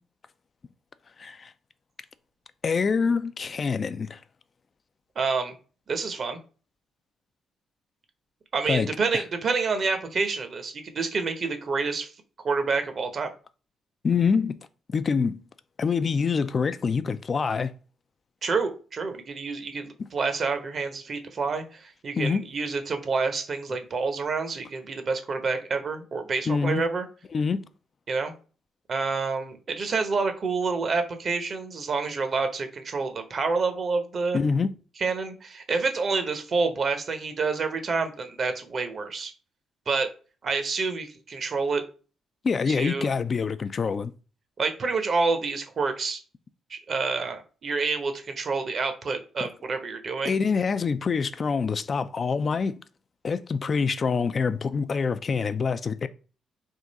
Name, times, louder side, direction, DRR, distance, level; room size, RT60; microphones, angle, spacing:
voice 1, 1.2-1.5 2.6-4.2 8.7-9.2 14.0-14.7 14.9-15.4 15.8-17.7 22.2-22.4 26.5-26.8 27.3-27.6 34.3-34.7 42.4-44.1 49.4-49.5 50.2-52.7 53.2-56.1, left 5 dB, 50° left, 0.3 m, -25 dB
voice 2, 5.2-5.5 5.9-6.4 8.5-12.1 12.4-13.3 18.4-27.1 28.1-28.3 28.9-34.4 35.0-39.3 39.9-40.1 40.4-41.8 42.7-43.1 44.6-46.2 46.7-50.4, right 4 dB, 55° right, 0.8 m, -28 dB
3.6 x 2.5 x 4.1 m
hypercardioid pair, 50°, 0 cm